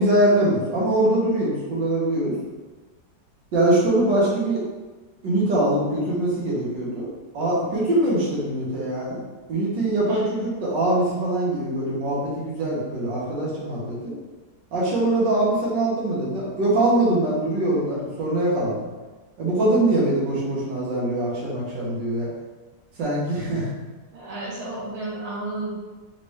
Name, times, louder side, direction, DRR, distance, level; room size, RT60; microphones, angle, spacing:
voice 1, 0.0-2.4 3.5-4.6 5.2-7.1 7.3-9.2 9.5-14.2 14.7-18.8 19.4-22.3 23.0-23.7, right 1 dB, 80° right, -6 dB, 1.9 m, -23 dB
voice 2, 24.1-25.7, right 2 dB, 30° right, -6 dB, 0.9 m, -32 dB
4.1 x 3.1 x 3.3 m, 1.2 s
omnidirectional pair, 1.9 m